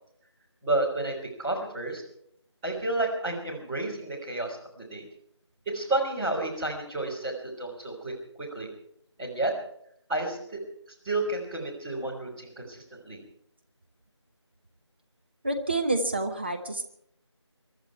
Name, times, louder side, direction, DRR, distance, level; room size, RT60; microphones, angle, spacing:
voice 1, 0.6-2.0 2.6-5.0 5.7-8.1 8.4-8.7 9.2-9.5 10.1-10.6 11.0-13.2, right 2 dB, 5° right, -8 dB, 3.4 m, -31 dB
voice 2, 15.4-16.8, right 2 dB, 20° right, 4 dB, 1.0 m, -28 dB
24.0 x 12.5 x 4.6 m, 0.69 s
figure-of-eight pair, 170°, 15 cm